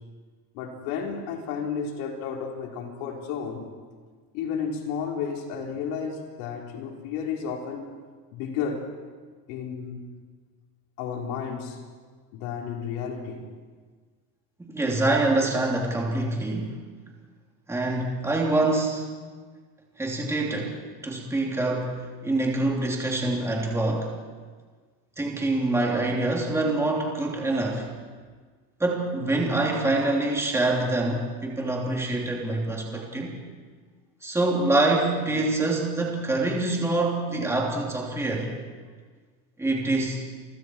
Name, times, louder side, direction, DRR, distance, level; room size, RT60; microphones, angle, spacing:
voice 1, 0.5-3.7 4.3-7.9 8.3-8.9 9.5-10.1 11.0-11.8 12.3-13.5, left 6 dB, 65° left, 1 dB, 4.4 m, -32 dB
voice 2, 14.7-16.8 17.7-19.1 20.0-24.1 25.2-27.9 28.8-33.3 34.2-38.6 39.6-40.2, right 2 dB, 5° right, -1 dB, 3.1 m, -25 dB
30.0 x 24.0 x 4.6 m, 1.5 s
cardioid pair, 175°, 44 cm